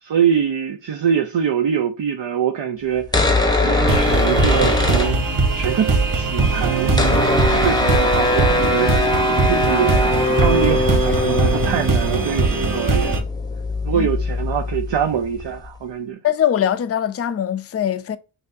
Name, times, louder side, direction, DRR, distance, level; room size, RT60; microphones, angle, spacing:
voice 1, 0.0-3.3 3.6-5.3 5.5-6.9 7.6-13.2 13.8-16.2, right 8 dB, 65° right, 0.6 m, -24 dB
sound 1, 3.0-5.7 6.0-6.1 6.2-15.7, left 2 dB, 10° left, 0.7 m, -21 dB
sound 2, 3.9-13.2, right 3 dB, 40° right, 1.1 m, -20 dB
voice 2, 16.2-18.2, left 10 dB, 35° left, 0.4 m, -21 dB
6.0 x 2.7 x 2.5 m
wide cardioid pair, 75°, 48 cm